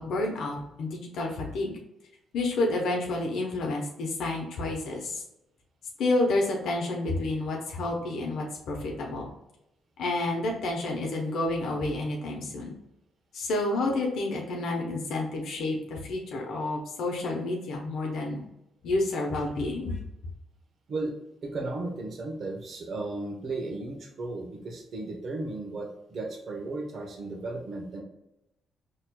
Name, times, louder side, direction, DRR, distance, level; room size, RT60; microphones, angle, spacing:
voice 1, 0.0-1.8 2.3-5.2 6.0-9.3 10.0-12.7 13.3-18.4 18.8-20.0, left 2 dB, 75° left, -1 dB, 0.8 m, -29 dB
voice 2, 21.4-28.0, right 2 dB, 55° right, 2 dB, 0.9 m, -35 dB
4.3 x 3.0 x 2.2 m, 0.86 s
cardioid pair, 90°, 0 cm